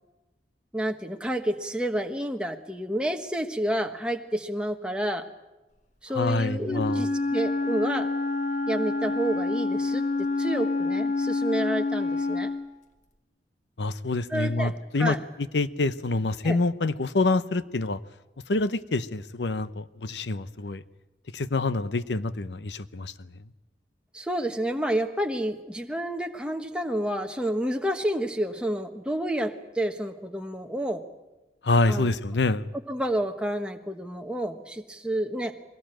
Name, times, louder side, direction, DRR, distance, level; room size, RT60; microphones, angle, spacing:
voice 1, 0.7-5.3 6.0-8.1 8.7-12.5 14.3-15.2 16.4-16.6 24.1-31.0 31.9-32.1 32.9-35.5, right 1 dB, 5° right, 4 dB, 1.2 m, -29 dB
voice 2, 6.1-7.0 13.8-15.2 15.5-18.0 18.5-20.8 21.3-23.1 31.6-32.7, left 2 dB, 85° left, 15 dB, 0.8 m, -26 dB
Wind instrument woodwind instrument, 6.6-12.7, left 3 dB, 45° left, 1.6 m, -27 dB
22.0 x 18.5 x 9.0 m, 1.1 s
head